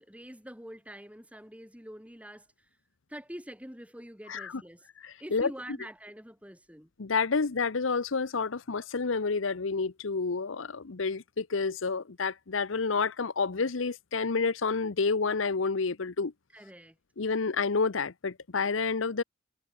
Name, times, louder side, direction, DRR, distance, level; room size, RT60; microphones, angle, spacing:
voice 1, 0.0-2.8 3.1-4.9 5.2-6.9 16.5-17.0, equal, 5° right, 8.0 m, -45 dB
voice 2, 5.0-5.5 7.0-16.3 17.2-19.2, left 4 dB, 80° left, 0.8 m, -29 dB
head